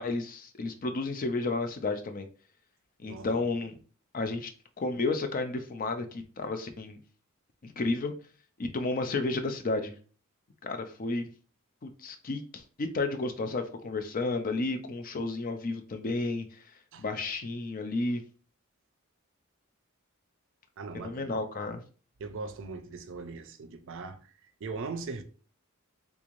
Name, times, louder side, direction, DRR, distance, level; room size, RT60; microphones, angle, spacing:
voice 1, 0.0-2.3 3.0-3.7 4.1-4.5 4.8-7.0 7.6-8.1 8.6-9.9 10.6-11.3 11.8-16.6 17.0-18.2 20.9-21.8, left 3 dB, 40° left, 0.5 m, -32 dB
voice 2, 3.0-3.5 16.9-17.0 20.8-21.3 22.2-25.2, right 4 dB, 65° right, 0.5 m, -40 dB
3.5 x 3.1 x 2.5 m
head